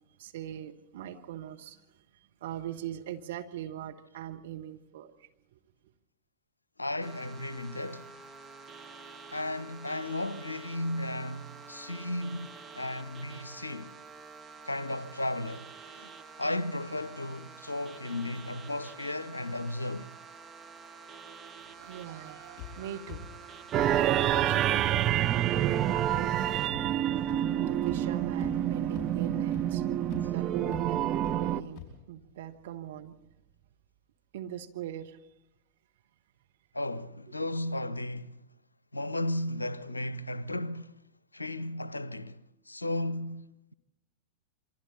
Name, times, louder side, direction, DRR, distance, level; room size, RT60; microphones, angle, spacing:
voice 1, 0.2-5.6 21.6-33.3 34.3-35.2, right 11 dB, 55° right, 1.4 m, -42 dB
voice 2, 6.8-8.1 9.3-13.9 14.6-16.1 16.4-20.1 36.7-38.4 38.9-41.0 41.3-43.7, left 1 dB, 80° left, 0.7 m, -35 dB
sound 1, 7.0-26.7, right 5 dB, 10° right, 1.3 m, -48 dB
sound 2, 22.6-22.7 23.1-23.2 23.7-23.9 24.3-24.4 24.9-25.0 25.5-25.6 26.1-26.2 26.7-26.8 27.3-27.4 27.9-28.0 28.4-28.6 28.9-29.0 29.5-29.6 30.1-30.2 30.7-30.8 31.2-31.3 31.8-31.9, left 19 dB, 35° left, 5.5 m, -43 dB
sound 3, 23.7-31.6, right 11 dB, 30° right, 0.7 m, -27 dB
27.5 x 24.5 x 4.2 m
figure-of-eight pair, 90°, 0 cm